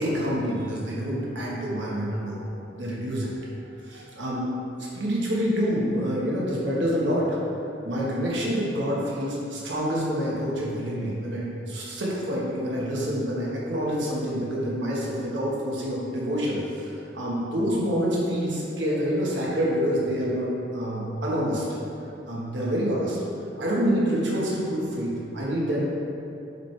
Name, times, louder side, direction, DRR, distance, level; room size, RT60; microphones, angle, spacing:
voice 1, 0.0-2.4 2.8-3.3 3.8-4.5 4.8-7.4 7.8-21.7 22.2-23.2 23.6-25.9, equal, 80° right, -5 dB, 1.4 m, -27 dB
7.5 x 4.8 x 3.3 m, 2.8 s
head